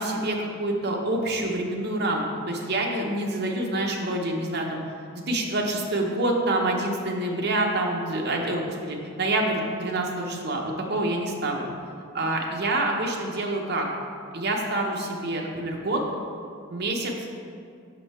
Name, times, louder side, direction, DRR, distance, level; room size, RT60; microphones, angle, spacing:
voice 1, 0.0-4.8 5.3-11.7 12.1-13.9 14.3-16.0 16.7-17.1, right 1 dB, 45° right, 0 dB, 0.7 m, -27 dB
5.6 x 5.2 x 4.2 m, 2.3 s
head